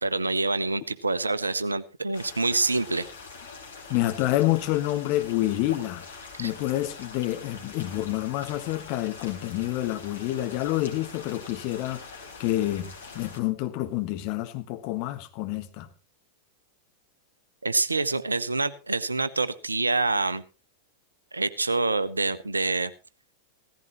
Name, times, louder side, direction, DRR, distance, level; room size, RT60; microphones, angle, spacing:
voice 1, 0.0-3.1 6.4-6.5 17.6-20.4 21.3-22.9, right 3 dB, 80° right, 0.8 m, -26 dB
sound 1, 2.1-13.4, left 4 dB, 70° left, 3.7 m, -44 dB
voice 2, 3.9-6.1 6.4-15.9, left 15 dB, 45° left, 1.4 m, -28 dB
16.0 x 14.5 x 3.0 m
figure-of-eight pair, 90°, 0 cm